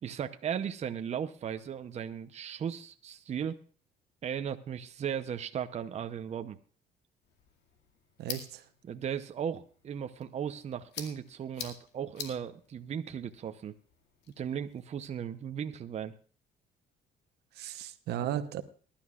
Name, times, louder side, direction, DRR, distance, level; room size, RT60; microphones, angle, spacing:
voice 1, 0.0-3.6 4.2-6.6 8.8-13.7 14.4-16.1, right 8 dB, 40° right, 8 dB, 0.8 m, -36 dB
sound 1, 7.2-15.2, left 7 dB, 80° left, 2.2 m, -48 dB
voice 2, 8.2-8.7 17.5-18.6, right 11 dB, 75° right, 11 dB, 0.9 m, -35 dB
21.0 x 11.5 x 2.4 m, 0.41 s
cardioid pair, 110°, 17 cm